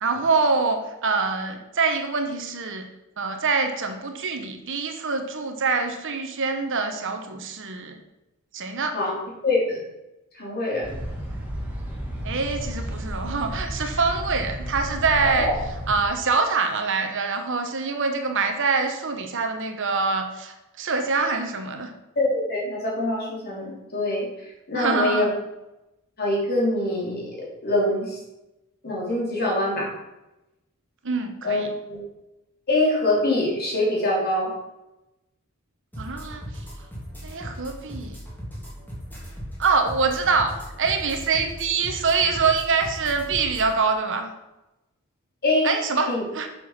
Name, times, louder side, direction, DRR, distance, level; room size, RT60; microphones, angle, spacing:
voice 1, 0.0-2.9 3.2-7.9 8.5-8.9 12.2-15.5 15.9-21.9 24.7-25.3 31.0-31.7 36.0-36.6 37.2-38.2 39.6-40.5 40.8-44.3 45.6-46.5, right 4 dB, 60° right, 5 dB, 1.1 m, -25 dB
voice 2, 8.9-9.8 10.3-10.9 15.3-15.5 22.1-24.3 24.7-25.3 26.2-28.2 28.8-29.9 31.4-32.0 32.7-34.5 45.4-45.7 46.1-46.2, left 1 dB, 45° left, -3 dB, 3.2 m, -24 dB
sound 1, 10.8-16.0, equal, 5° right, 1.9 m, -32 dB
sound 2, 35.9-43.7, equal, 10° left, 3.0 m, -38 dB
7.9 x 6.4 x 5.8 m, 0.97 s
head